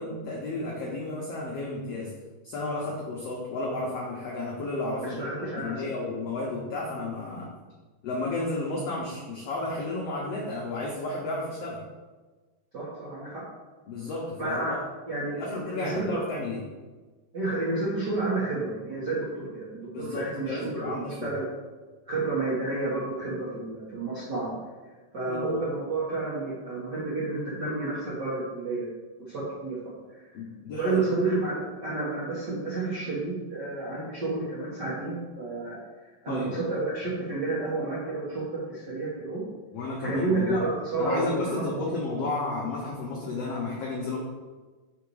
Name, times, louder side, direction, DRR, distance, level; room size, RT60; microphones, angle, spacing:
voice 1, 0.0-2.1 2.4-7.5 8.0-11.8 13.9-14.8 15.3-16.6 19.9-21.4 25.3-25.6 30.3-31.1 36.3-36.5 39.7-40.6 41.0-44.2, left 2 dB, 85° left, -2 dB, 1.3 m, -32 dB
voice 2, 5.0-5.9 12.7-13.5 14.4-14.7 15.1-16.1 17.3-20.9 21.2-21.5 22.1-24.5 25.1-28.9 29.3-29.8 30.8-39.4 40.0-41.6, right 3 dB, 55° right, -9 dB, 1.1 m, -30 dB
5.9 x 4.1 x 4.8 m, 1.3 s
omnidirectional pair, 3.9 m